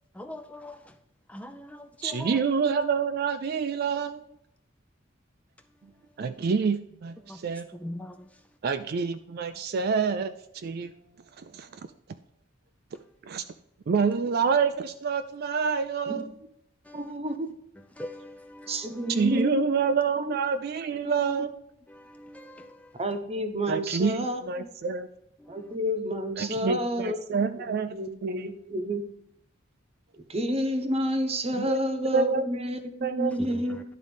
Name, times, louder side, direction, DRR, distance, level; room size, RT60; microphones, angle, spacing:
voice 1, 0.2-0.9 1.3-2.4 7.3-7.4 7.7-8.2 18.0-19.1 21.9-22.8 25.4-25.6 33.5-33.8, left 1 dB, 5° left, 0.4 m, -42 dB
voice 2, 2.0-4.1 6.2-7.7 8.6-10.3 10.6-10.9 11.4-11.7 13.3-13.4 13.9-16.3 19.1-21.5 23.7-25.1 26.4-28.5 31.6-31.8 32.1-32.4 33.0-33.3 33.6-33.7, right 5 dB, 55° right, 0.4 m, -27 dB
voice 3, 16.9-17.5 18.7-19.7 20.2-20.4 21.0-21.4 23.0-24.7 25.5-27.2 27.7-29.0 30.3-33.8, equal, 30° right, 0.9 m, -30 dB
11.0 x 3.9 x 5.1 m
head